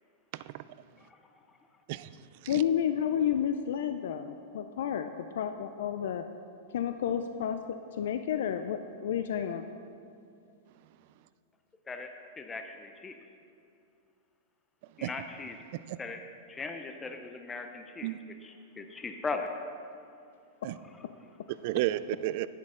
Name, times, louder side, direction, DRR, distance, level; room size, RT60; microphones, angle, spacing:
voice 1, 0.3-0.6 1.9-2.1 2.4-2.6 15.0-15.1 15.7-16.0 18.0-18.2 20.6-20.8 21.6-22.5, right 15 dB, 50° right, 15 dB, 0.3 m, -32 dB
voice 2, 2.5-6.2 6.7-7.6 8.0-9.7, left 9 dB, 75° left, 8 dB, 0.4 m, -31 dB
voice 3, 12.4-13.2 15.0-15.6 16.0-16.2 16.5-18.1 18.4-19.5, left 4 dB, 15° left, 5 dB, 0.5 m, -38 dB
10.0 x 9.7 x 3.7 m, 2.5 s
supercardioid pair, 150°, 0 cm